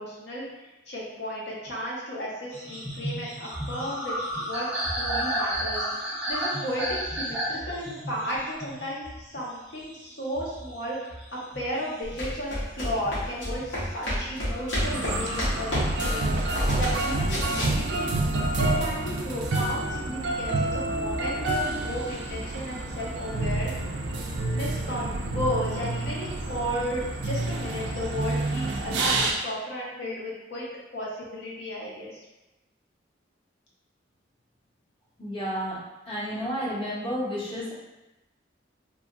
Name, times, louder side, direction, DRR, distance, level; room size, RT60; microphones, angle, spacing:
voice 1, 0.0-4.2 4.4-16.3 16.7-18.1 18.5-23.7 24.5-30.7 30.9-32.3, equal, 60° left, -4 dB, 0.7 m, -34 dB
sound 1, 2.5-12.4 12.8-13.9 14.4-15.8, right 1 dB, 5° right, 0.7 m, -33 dB
sound 2, 12.0-18.0, equal, 85° left, 1.0 m, -30 dB
sound 3, 14.8-29.3, right 2 dB, 65° right, 0.3 m, -28 dB
voice 2, 35.2-35.8 36.1-37.7, equal, 30° left, -8 dB, 0.8 m, -31 dB
2.9 x 2.3 x 2.4 m, 1.0 s
head